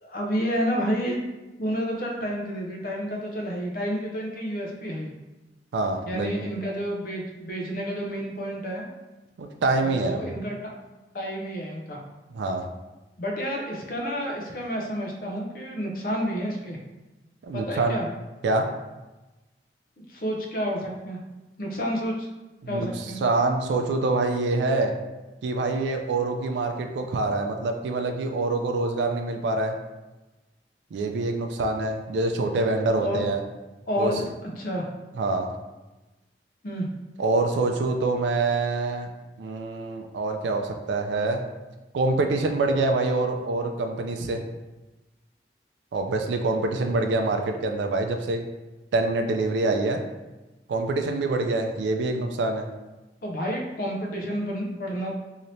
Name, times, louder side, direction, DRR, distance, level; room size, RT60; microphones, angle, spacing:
voice 1, 0.0-1.2 1.6-5.1 6.1-8.9 9.8-10.5 11.1-12.0 13.2-16.8 17.5-18.1 20.1-21.2 21.6-22.3 22.7-23.2 33.0-33.2 33.9-34.3 34.6-34.9 36.6-36.9 53.2-55.1, equal, 50° left, 0 dB, 0.5 m, -30 dB
voice 2, 5.7-6.3 9.4-10.2 12.3-12.6 17.4-18.0 18.4-18.7 22.6-24.9 25.4-29.7 30.9-33.4 34.0-34.1 35.2-35.5 37.2-39.1 39.4-41.4 41.9-44.4 45.9-48.4 48.9-50.0 50.7-52.7, right 3 dB, 90° right, 4 dB, 0.3 m, -25 dB
3.2 x 2.8 x 2.6 m, 1.1 s
head